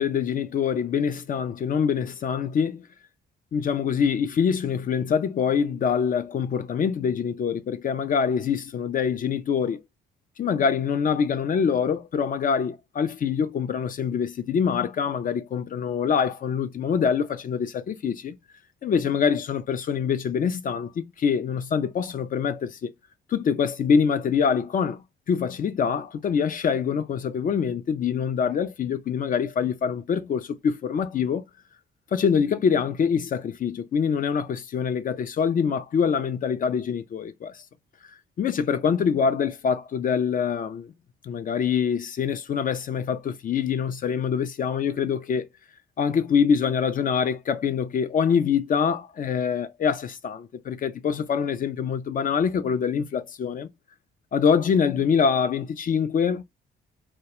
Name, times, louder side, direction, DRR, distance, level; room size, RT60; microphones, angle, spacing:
voice 1, 0.0-2.9 3.5-9.8 10.4-18.4 18.8-22.9 23.3-31.4 32.1-37.6 38.4-40.9 41.2-45.5 46.0-53.7 54.3-56.4, left 7 dB, 45° left, 0.4 m, -25 dB
2.3 x 2.2 x 2.8 m
cardioid pair, 90°, 20 cm